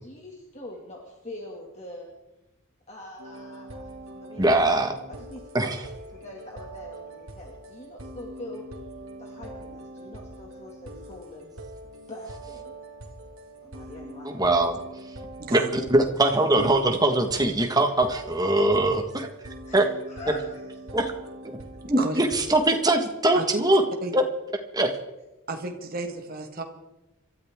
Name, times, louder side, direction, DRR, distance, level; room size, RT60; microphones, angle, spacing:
voice 1, 0.0-2.1 2.9-4.7 5.2-5.8 6.1-8.6 9.2-11.5 12.1-12.7 13.6-14.3 19.7-20.6, left 1 dB, 30° left, -1 dB, 2.2 m, -43 dB
sound 1, 3.2-22.9, right 1 dB, 65° right, 2.1 m, -43 dB
voice 2, 4.4-4.9 5.5-5.8 14.2-14.8 15.5-19.3 19.7-19.9 20.9-21.1 21.9-23.8 24.1-24.2 24.7-24.9, right 1 dB, 15° right, 5 dB, 1.5 m, -22 dB
voice 3, 21.8-22.2 23.3-23.7 24.0-24.1 25.5-26.6, right 2 dB, 40° right, 4 dB, 1.7 m, -32 dB
26.5 x 13.0 x 3.7 m, 0.98 s
head